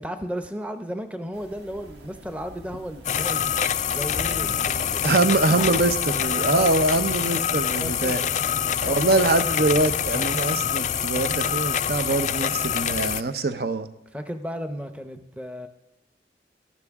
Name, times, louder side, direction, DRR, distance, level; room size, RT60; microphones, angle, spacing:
voice 1, 0.0-5.2 5.5-5.7 6.3-6.7 7.7-9.0 9.2-9.4 14.1-15.7, equal, 10° right, 8 dB, 0.7 m, -35 dB
sound 1, 1.3-12.0, equal, 75° right, 1.4 m, -45 dB
sound 2, 3.0-13.2, left 8 dB, 40° left, 0.4 m, -25 dB
voice 2, 5.0-8.2 8.8-13.9, right 2 dB, 60° right, 10 dB, 0.8 m, -23 dB
18.0 x 13.0 x 3.6 m, 1.0 s
head